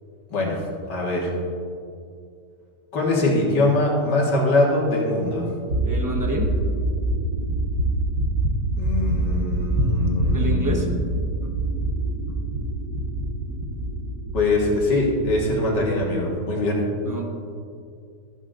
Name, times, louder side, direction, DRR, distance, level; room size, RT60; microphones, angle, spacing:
voice 1, 0.3-0.6 0.9-1.3 2.9-5.5 8.8-11.0 14.3-16.8, left 2 dB, 90° left, -2 dB, 2.3 m, -22 dB
sound 1, 5.7-14.7 15.0-15.3 15.7-16.1, right 1 dB, 80° right, 1.8 m, -24 dB
voice 2, 5.8-6.5 10.3-10.9 17.0-17.3, equal, 15° right, 0 dB, 0.8 m, -28 dB
13.0 x 11.0 x 2.6 m, 2.4 s
omnidirectional pair, 1.8 m